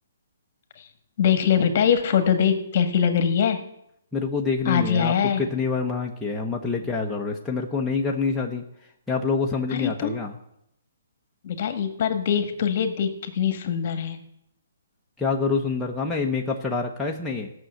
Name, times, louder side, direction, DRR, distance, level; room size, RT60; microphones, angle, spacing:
voice 1, 1.2-3.6 4.6-5.4 9.7-10.1 11.4-14.2, left 8 dB, 45° left, 8 dB, 1.5 m, -22 dB
voice 2, 4.1-8.6 9.1-10.4 15.2-17.5, left 4 dB, 5° left, -2 dB, 0.9 m, -26 dB
14.0 x 6.3 x 7.9 m, 0.77 s
hypercardioid pair, 155°, 0 cm